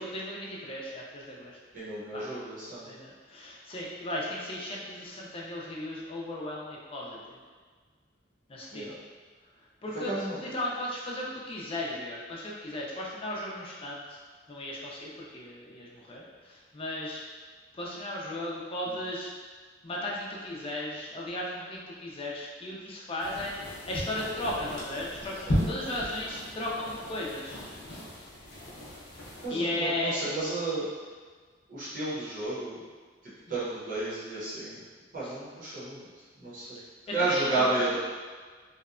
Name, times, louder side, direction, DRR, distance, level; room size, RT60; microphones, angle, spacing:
voice 1, 0.0-1.6 2.1-2.3 2.8-7.4 8.5-8.9 9.8-14.2 14.5-17.2 17.7-19.3 19.8-23.5 23.9-27.6 29.5-30.2 33.5-33.6 35.2-35.3 37.2-38.0, left 1 dB, 30° left, -4 dB, 0.4 m, -36 dB
voice 2, 1.7-2.9 8.7-8.9 10.1-10.4 18.9-19.0 25.5-25.6 29.4-30.9 31.7-32.8 33.5-34.8 35.1-36.0 36.4-36.8 37.1-38.0, right 2 dB, 50° right, -10 dB, 0.7 m, -32 dB
sound 1, 23.2-29.5, equal, 75° left, 0.7 m, -36 dB
2.7 x 2.1 x 2.4 m, 1.5 s
head